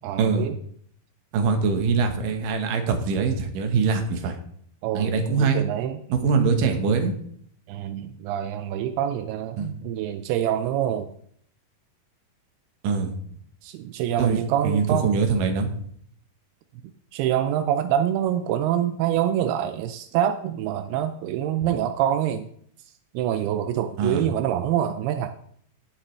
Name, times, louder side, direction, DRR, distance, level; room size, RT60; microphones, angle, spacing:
voice 1, 0.0-0.6 4.8-6.0 7.7-11.1 13.6-15.2 17.1-22.5 23.1-25.3, right 10 dB, 85° right, 9 dB, 2.6 m, -26 dB
voice 2, 1.3-4.4 4.9-5.6 6.2-7.1 9.6-9.7 12.8-13.1 14.2-15.7 24.0-24.3, right 5 dB, 65° right, 5 dB, 2.8 m, -23 dB
18.0 x 7.4 x 3.3 m, 0.64 s
omnidirectional pair, 4.5 m